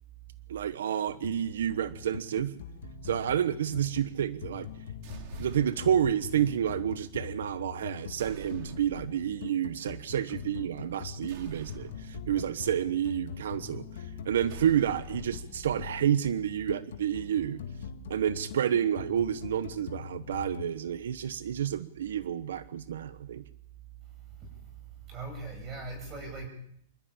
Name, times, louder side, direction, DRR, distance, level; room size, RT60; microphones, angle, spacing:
voice 1, 0.5-2.5 3.0-4.7 5.4-17.6 18.1-23.4, right 9 dB, 85° right, 14 dB, 1.0 m, -30 dB
sound 1, 1.1-20.7, left 7 dB, 75° left, 2.0 m, -43 dB
sound 2, 5.0-6.1 8.2-9.2 11.3-12.4 14.5-15.9, right 6 dB, 40° right, 2.5 m, -47 dB
voice 2, 24.4-24.7 25.1-26.5, right 3 dB, 20° right, 4 dB, 7.9 m, -40 dB
27.0 x 12.5 x 8.8 m, 0.69 s
supercardioid pair, 170°, 0 cm